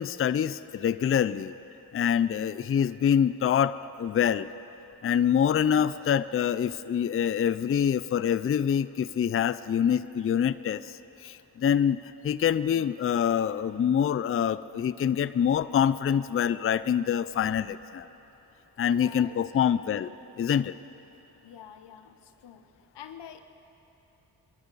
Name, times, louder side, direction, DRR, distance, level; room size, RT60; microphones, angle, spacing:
voice 1, 0.0-1.5 1.9-4.5 5.0-18.1 18.8-20.1 20.4-20.7, left 8 dB, 35° left, 15 dB, 0.4 m, -25 dB
voice 2, 18.9-19.4 21.4-22.7 22.9-23.4, left 9 dB, 90° left, 9 dB, 0.9 m, -46 dB
26.5 x 11.5 x 4.0 m, 3.0 s
cardioid pair, 50°, 40 cm